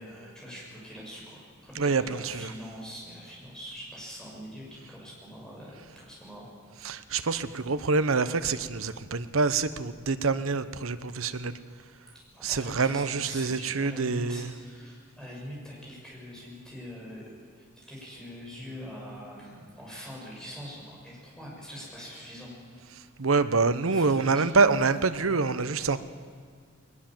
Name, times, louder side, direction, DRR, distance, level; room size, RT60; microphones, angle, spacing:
voice 1, 0.0-6.5 6.9-7.1 12.1-17.2 17.5-22.5 23.9-24.5, equal, 5° left, -4 dB, 6.3 m, -43 dB
voice 2, 1.7-2.5 6.8-11.5 12.4-14.5 23.2-26.0, right 4 dB, 85° right, 12 dB, 0.9 m, -26 dB
20.5 x 19.5 x 7.5 m, 2.1 s
head